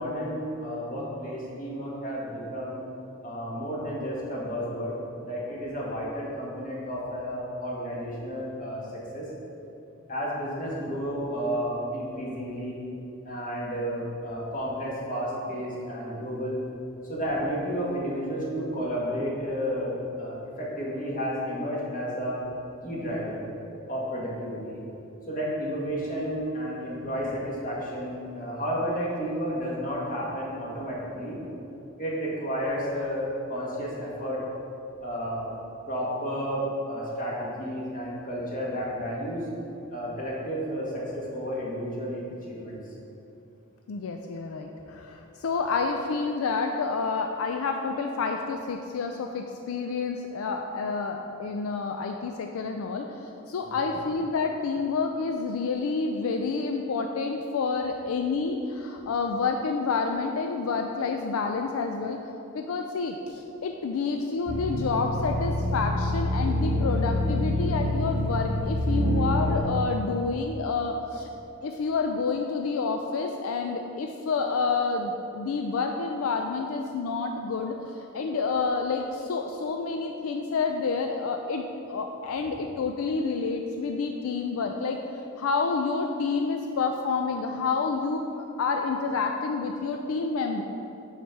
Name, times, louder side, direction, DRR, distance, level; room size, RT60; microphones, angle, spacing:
voice 1, 0.0-2.8 3.2-4.9 5.2-8.8 9.1-9.2 10.1-12.8 13.2-16.6 17.1-22.4 22.8-23.4 23.9-24.8 25.3-31.4 32.0-34.4 35.0-35.5 35.8-39.5 39.9-42.8 53.6-54.0, equal, 40° left, -5 dB, 1.6 m, -32 dB
voice 2, 43.9-53.1 53.5-62.2 62.5-71.3 71.6-85.0 85.4-90.6, left 4 dB, 80° left, 4 dB, 0.4 m, -29 dB
sound 1, 64.5-69.6, left 1 dB, 55° right, 0.8 m, -26 dB
6.0 x 5.7 x 4.6 m, 2.8 s
head